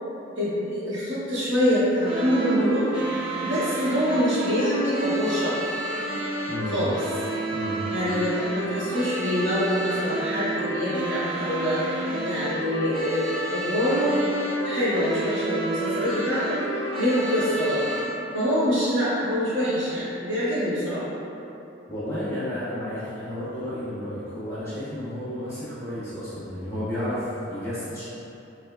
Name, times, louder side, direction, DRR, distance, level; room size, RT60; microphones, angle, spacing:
voice 1, 0.4-2.9 3.4-5.6 6.7-6.9 7.9-11.8 12.2-17.9 18.3-21.0, equal, 75° right, -11 dB, 1.4 m, -25 dB
sound 1, 2.0-18.0, right 1 dB, 30° right, 0.8 m, -31 dB
voice 2, 6.5-6.8 7.5-7.8 21.9-28.0, left 1 dB, 15° left, -13 dB, 1.4 m, -32 dB
4.8 x 3.2 x 2.3 m, 2.9 s
head